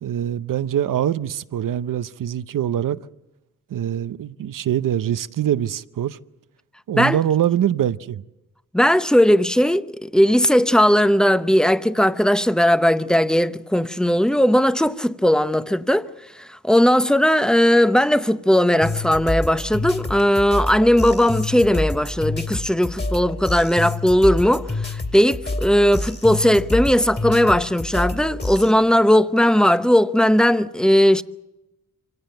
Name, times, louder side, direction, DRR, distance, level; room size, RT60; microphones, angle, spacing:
voice 1, 0.0-3.0 3.7-6.2 6.9-8.2, right 10 dB, 75° right, 0.7 m, -23 dB
voice 2, 8.7-16.1 16.4-31.2, equal, ahead, 0.7 m, -18 dB
sound 1, 18.8-28.7, left 2 dB, 30° left, 2.5 m, -28 dB
25.5 x 17.5 x 7.8 m
cardioid pair, 70°, 32 cm